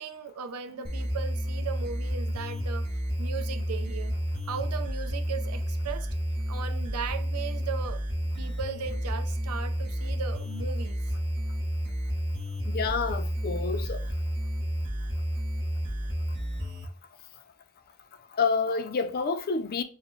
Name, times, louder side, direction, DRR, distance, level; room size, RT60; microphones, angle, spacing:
voice 1, 0.0-2.9 3.2-4.2 4.5-6.1 6.5-8.0 8.4-11.0, right 6 dB, 85° right, 0.5 m, -37 dB
sound 1, 0.8-16.8, equal, 25° right, 1.0 m, -31 dB
voice 2, 12.6-14.1 18.3-19.8, left 5 dB, 45° left, 0.4 m, -28 dB
6.3 x 2.1 x 3.1 m
head